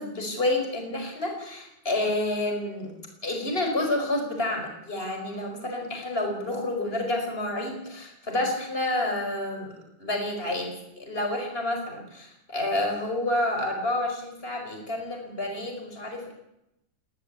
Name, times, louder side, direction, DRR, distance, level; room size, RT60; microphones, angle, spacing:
voice 1, 0.0-2.9 3.2-10.7 11.0-16.3, left 1 dB, 25° left, 2 dB, 5.6 m, -29 dB
21.0 x 17.0 x 8.5 m, 0.85 s
omnidirectional pair, 2.2 m